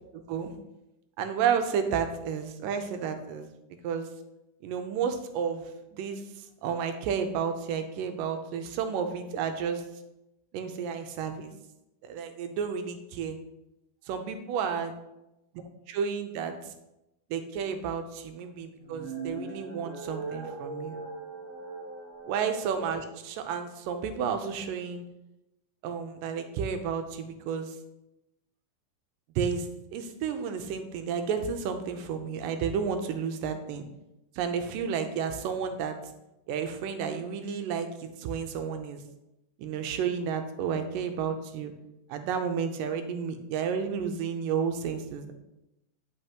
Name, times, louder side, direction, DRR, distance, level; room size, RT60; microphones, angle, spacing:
voice 1, 0.1-0.5 1.2-3.5 3.8-4.1 4.6-5.6 5.9-6.2 6.6-9.8 10.5-11.5 12.0-13.4 14.1-14.9 15.9-16.6 17.3-21.0 22.3-25.0 25.8-27.7 29.4-33.9 34.4-36.0 36.5-39.0 39.6-41.7 42.1-45.3, right 6 dB, 80° right, 7 dB, 2.3 m, -31 dB
sound 1, 18.8-23.1, right 3 dB, 55° right, 1.2 m, -40 dB
11.0 x 5.5 x 3.0 m, 0.91 s
omnidirectional pair, 4.1 m